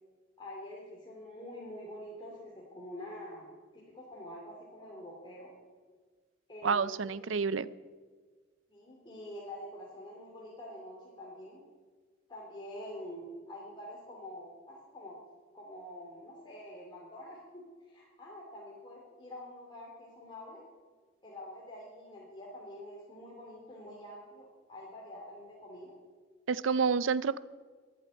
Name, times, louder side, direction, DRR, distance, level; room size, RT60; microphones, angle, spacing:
voice 1, 0.4-3.5 3.7-5.5 6.5-7.2 8.7-11.6 12.3-15.2 15.5-20.6 21.2-26.0, left 1 dB, 25° left, -4 dB, 2.7 m, -46 dB
voice 2, 6.6-7.7 26.5-27.4, right 5 dB, 80° right, 17 dB, 0.6 m, -29 dB
11.5 x 11.5 x 9.6 m, 1.5 s
head